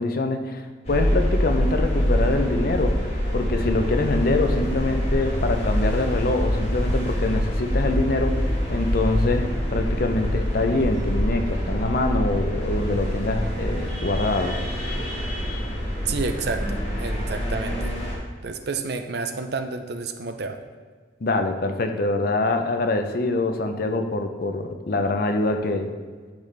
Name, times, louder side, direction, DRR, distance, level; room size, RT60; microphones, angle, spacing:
voice 1, 0.0-3.1 3.3-14.6 21.2-25.9, left 2 dB, 45° left, 6 dB, 0.5 m, -24 dB
sound 1, 0.8-18.1, equal, 30° left, 1.5 m, -25 dB
voice 2, 16.1-17.9 18.4-20.6, right 4 dB, 55° right, 7 dB, 0.5 m, -30 dB
10.0 x 4.1 x 3.3 m, 1.5 s
head